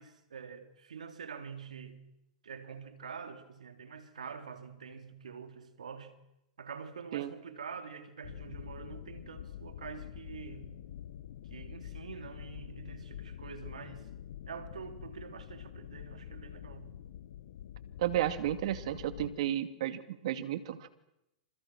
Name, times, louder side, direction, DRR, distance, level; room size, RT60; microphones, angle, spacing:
voice 1, 0.0-2.1 2.4-6.1 6.6-10.8 11.5-14.1 14.5-17.0, right 6 dB, 90° right, 3.3 m, -46 dB
sound 1, 8.2-19.3, left 10 dB, 70° left, 1.4 m, -46 dB
voice 2, 18.0-20.9, right 12 dB, 65° right, 2.5 m, -33 dB
29.0 x 27.5 x 6.2 m
hypercardioid pair, 120°, 4 cm